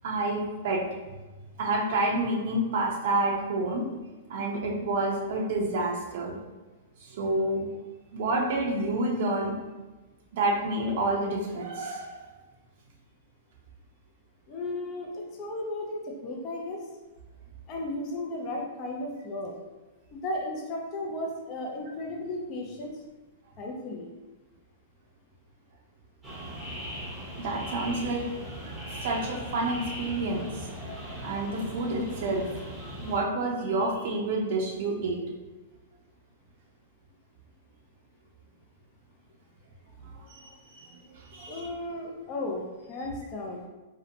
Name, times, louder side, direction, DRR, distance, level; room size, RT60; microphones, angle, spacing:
voice 1, 0.0-0.8 1.6-3.9 4.3-6.3 7.0-7.7 8.1-9.6 10.3-12.2 27.4-28.2 29.0-30.5 31.2-32.4 33.0-35.2 40.3-41.7, right 2 dB, 60° right, -1 dB, 0.5 m, -29 dB
voice 2, 14.5-16.8 17.7-19.6 20.1-23.0 23.6-24.1 41.5-43.6, left 1 dB, 35° left, 0 dB, 0.4 m, -35 dB
sound 1, 26.2-33.2, equal, 10° right, 0.7 m, -39 dB
2.7 x 2.1 x 2.5 m, 1.2 s
hypercardioid pair, 145°, 0 cm